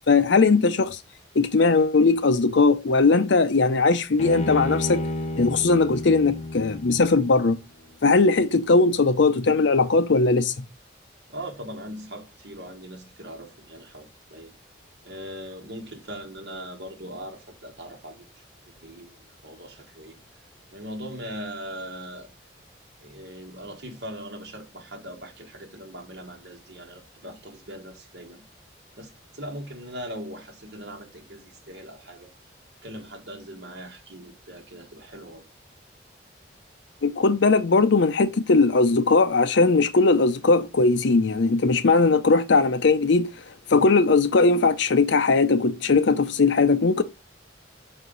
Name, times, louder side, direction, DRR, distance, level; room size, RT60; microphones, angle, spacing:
voice 1, 0.1-1.0 1.3-5.0 5.4-7.6 8.0-10.6 37.0-43.3 43.7-47.0, left 3 dB, 75° left, 0.6 m, -19 dB
Bowed string instrument, 4.2-7.5, left 2 dB, 35° left, 0.8 m, -31 dB
voice 2, 11.3-14.5 15.0-20.2 20.7-22.3 23.0-28.4 29.0-32.3 32.8-35.4, equal, 60° right, 1.5 m, -40 dB
5.5 x 4.5 x 3.9 m
head